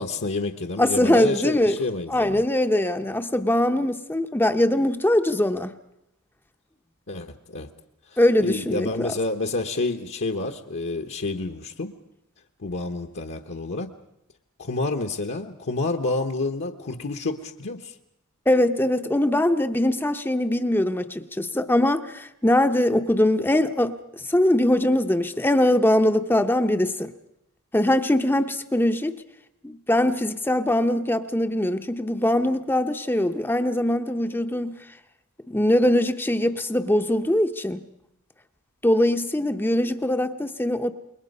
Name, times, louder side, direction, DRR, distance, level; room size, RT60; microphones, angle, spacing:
voice 1, 0.0-2.4 7.1-7.7 8.1-11.9 12.6-13.9 14.6-17.9, left 2 dB, 55° left, 1.1 m, -29 dB
voice 2, 0.8-1.8 2.1-5.7 8.2-9.1 18.5-27.1 27.7-29.2 29.6-34.8 35.5-37.8 38.8-40.9, left 1 dB, 10° left, 0.7 m, -22 dB
28.0 x 22.0 x 5.4 m
head